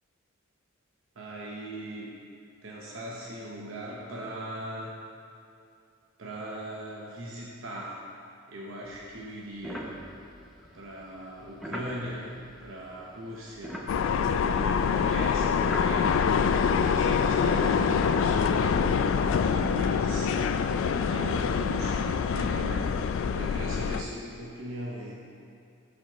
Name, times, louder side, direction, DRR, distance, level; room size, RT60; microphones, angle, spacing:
voice 1, 1.2-2.2 2.6-5.0 6.2-8.0 8.5-9.9 10.7-13.9 14.4-16.2 16.8-22.9 23.3-25.2, right 1 dB, 75° right, -3 dB, 0.8 m, -39 dB
sound 1, 8.9-13.1 13.4-16.3, equal, ahead, 0.6 m, -42 dB
sound 2, 13.9-24.0, left 6 dB, 70° left, 0.3 m, -25 dB
12.0 x 4.2 x 2.9 m, 2.6 s
head